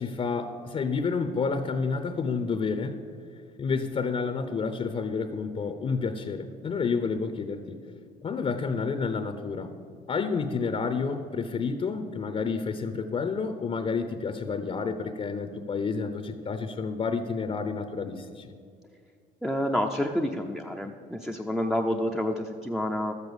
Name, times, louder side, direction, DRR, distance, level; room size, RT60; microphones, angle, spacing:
voice 1, 0.0-3.0 3.6-7.8 8.2-9.8 10.1-18.5, left 5 dB, 35° left, 9 dB, 0.8 m, -30 dB
voice 2, 19.4-23.1, left 1 dB, ahead, 2 dB, 0.6 m, -28 dB
12.5 x 8.2 x 7.0 m, 2.2 s
cardioid pair, 110°, 17 cm